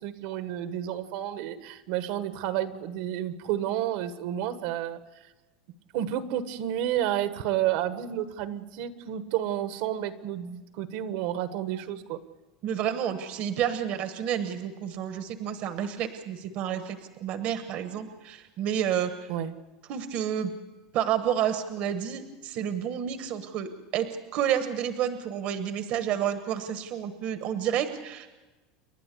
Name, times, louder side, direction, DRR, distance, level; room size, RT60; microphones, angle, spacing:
voice 1, 0.0-5.0 5.9-12.2 19.3-19.5, right 11 dB, 60° right, 10 dB, 1.4 m, -30 dB
voice 2, 12.6-19.1 19.9-20.5 20.9-28.3, right 9 dB, 40° right, 9 dB, 1.2 m, -30 dB
29.5 x 11.5 x 8.3 m, 1.1 s
supercardioid pair, 165°, 3 cm